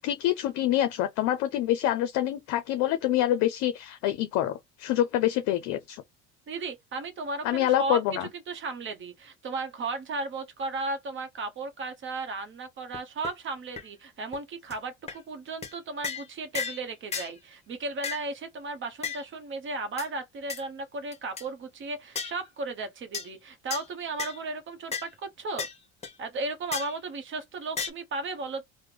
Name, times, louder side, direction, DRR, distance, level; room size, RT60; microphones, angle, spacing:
voice 1, 0.0-6.0 7.4-8.3, left 12 dB, 65° left, 0.5 m, -26 dB
voice 2, 6.5-25.7 26.2-28.7, right 3 dB, 40° right, 0.8 m, -35 dB
sound 1, 12.9-13.0 13.2-13.3 13.8-13.9 14.3-14.4 14.7-14.8 15.1-15.2 15.6-15.7 16.0-16.3 16.5-16.8 17.1-17.3 18.0-18.3 19.0-19.2 20.0-20.1 20.5-20.6 21.1-21.4 22.1-22.4 23.1-23.3 23.7-23.8 24.2-24.4 24.9-25.1 25.6-25.7 26.0-26.1 26.7-27.0 27.8-27.9, left 5 dB, 20° left, 0.9 m, -34 dB
3.4 x 2.1 x 3.1 m
supercardioid pair, 90°, 30 cm